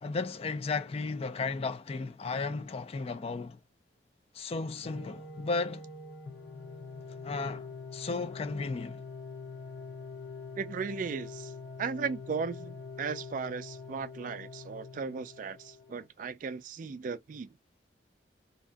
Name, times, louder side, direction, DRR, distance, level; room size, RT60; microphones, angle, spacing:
voice 1, 0.0-3.6 4.3-5.8 7.2-7.7 7.9-9.0, left 3 dB, 35° left, 0.3 m, -34 dB
sound 1, 4.8-16.1, left 4 dB, 65° left, 0.8 m, -44 dB
voice 2, 10.5-11.5 11.8-17.5, right 5 dB, 50° right, 0.3 m, -36 dB
2.8 x 2.3 x 2.5 m
head